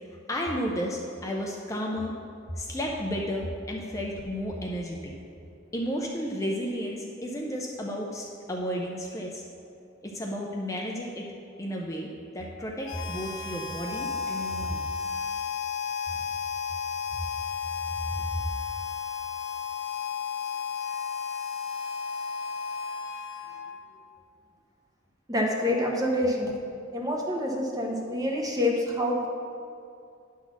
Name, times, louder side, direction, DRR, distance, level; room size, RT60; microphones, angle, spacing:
voice 1, 0.3-2.1 2.6-5.1 5.7-9.4 10.0-11.3 11.6-14.9 18.2-18.3, equal, 15° left, -1 dB, 0.5 m, -32 dB
Harmonica, 12.8-23.9, left 6 dB, 70° left, 0.9 m, -33 dB
voice 2, 25.3-26.6 26.9-29.3, left 1 dB, 20° right, 0 dB, 0.9 m, -27 dB
9.3 x 4.0 x 6.1 m, 2.5 s
head